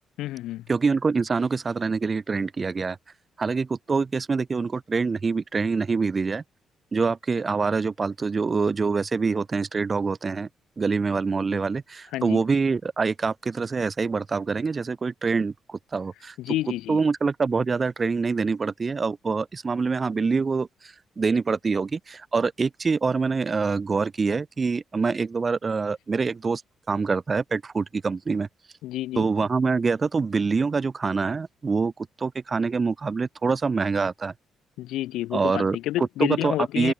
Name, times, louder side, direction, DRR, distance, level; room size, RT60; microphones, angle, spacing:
voice 1, 0.2-0.7 12.1-12.4 16.4-17.0 28.8-29.3 34.8-36.9, left 15 dB, 90° left, 0.5 m, -29 dB
voice 2, 0.7-3.0 3.4-6.4 6.9-10.5 10.8-16.3 16.9-26.6 26.9-28.5 29.2-31.9 32.2-34.3 35.3-35.8 36.2-36.9, right 4 dB, 35° right, 0.5 m, -25 dB
cardioid pair, 90°, 0 cm